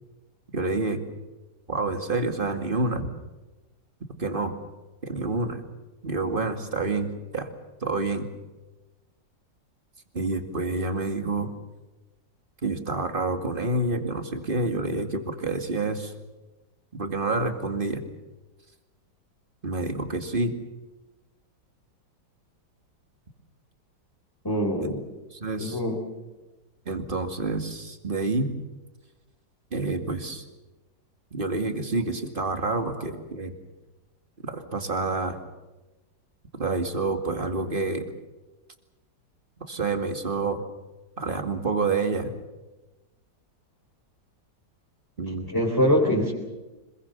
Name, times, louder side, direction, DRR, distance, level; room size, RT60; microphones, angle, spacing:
voice 1, 0.5-1.0 1.7-3.1 4.2-4.5 5.0-5.6 6.0-7.5 7.8-8.3 10.1-11.5 12.6-16.1 17.0-18.0 19.6-20.5 24.8-24.9 25.3-25.8 26.9-28.5 29.7-30.4 31.3-33.5 34.4-35.4 36.6-38.1 39.7-40.6 41.2-42.3 45.2-45.5, right 3 dB, 30° right, 6 dB, 2.4 m, -28 dB
voice 2, 24.4-25.0 25.6-26.0 45.5-46.3, equal, 10° left, -3 dB, 4.1 m, -23 dB
26.5 x 21.5 x 7.0 m, 1.1 s
omnidirectional pair, 1.9 m